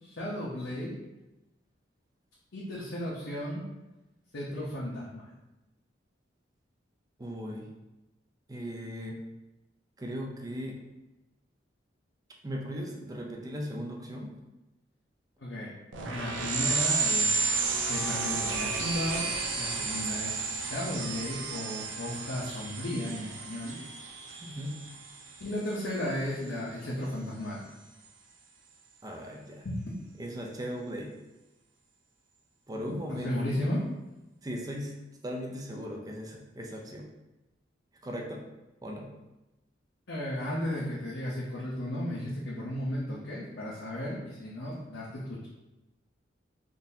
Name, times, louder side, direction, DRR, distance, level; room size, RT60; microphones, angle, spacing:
voice 1, 0.0-0.9 2.5-3.6 4.3-5.3 15.4-15.7 16.1-17.4 17.9-19.3 19.5-23.7 25.4-27.6 29.6-29.8 33.2-33.9 40.1-45.5, left 1 dB, 75° left, -6 dB, 0.7 m, -34 dB
voice 2, 7.2-7.7 8.5-9.2 10.0-10.8 12.4-14.3 19.8-19.9 24.4-24.7 29.0-29.6 30.2-31.1 32.7-33.6 34.4-35.0 35.2-37.1 38.0-38.4 38.8-39.1, equal, 20° right, 0 dB, 0.4 m, -38 dB
sound 1, 15.9-26.1, right 4 dB, 90° right, 0.5 m, -32 dB
3.8 x 2.6 x 2.7 m, 1.0 s
head